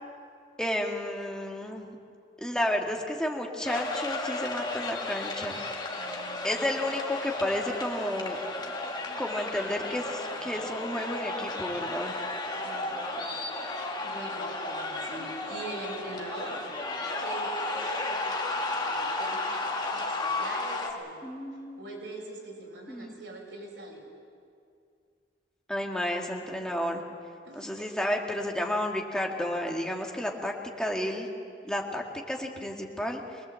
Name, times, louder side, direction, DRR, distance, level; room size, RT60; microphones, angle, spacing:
voice 1, 0.6-1.9 2.4-5.6 6.4-8.4 9.2-12.1 21.2-21.9 22.9-23.2 25.7-27.0 27.5-31.3 31.6-33.4, left 1 dB, 5° left, 0 dB, 2.0 m, -32 dB
sound 1, 3.6-20.9, left 2 dB, 25° left, 2.0 m, -33 dB
voice 2, 5.9-6.7 12.6-13.7 14.0-16.6 17.2-21.2 21.5-24.0 27.4-28.1, right 2 dB, 85° right, -2 dB, 6.1 m, -43 dB
24.5 x 20.0 x 7.7 m, 2.3 s
head